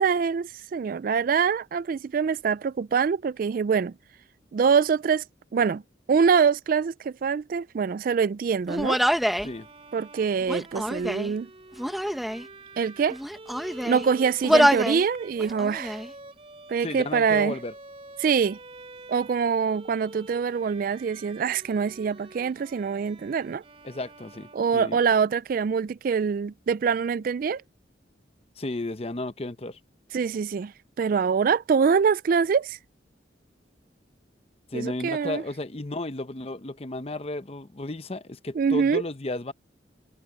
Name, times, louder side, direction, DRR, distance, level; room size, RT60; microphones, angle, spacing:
voice 1, 0.0-3.9 4.5-5.2 5.5-5.8 6.1-9.0 9.9-11.5 12.8-13.2 13.8-16.0 16.7-17.5 18.2-18.6 19.1-23.6 24.5-27.6 30.1-30.7 31.0-32.8 34.7-35.4 38.6-39.0, right 6 dB, 50° right, 0.3 m, -24 dB
Human voice, 8.7-9.5 10.4-11.3 11.8-12.4 13.1-14.1 14.4-15.0 15.4-16.1, equal, ahead, 1.1 m, -25 dB
Bowed string instrument, 9.2-25.3, right 2 dB, 30° right, 3.2 m, -47 dB
voice 2, 16.8-17.7 23.8-25.0 28.6-29.8 34.7-39.5, left 2 dB, 35° left, 0.8 m, -33 dB
head